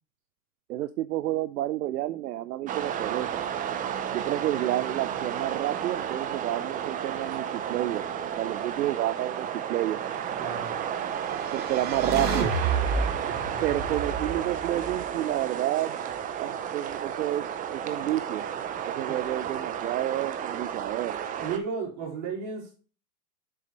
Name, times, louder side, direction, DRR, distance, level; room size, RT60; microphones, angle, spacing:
voice 1, 0.7-3.4 4.1-8.1 8.4-10.0 11.5-12.5 13.6-16.0 16.4-18.4 18.8-21.2, right 14 dB, 80° right, 15 dB, 0.5 m, -30 dB
sound 1, 2.7-21.6, right 9 dB, 15° right, 0.5 m, -32 dB
voice 2, 10.4-10.7 19.1-19.2 21.3-22.7, right 5 dB, 55° right, -3 dB, 4.3 m, -34 dB
sound 2, 11.0-15.3, right 4 dB, 35° right, 1.8 m, -31 dB
7.4 x 6.6 x 3.1 m, 0.37 s
hypercardioid pair, 115°, 47 cm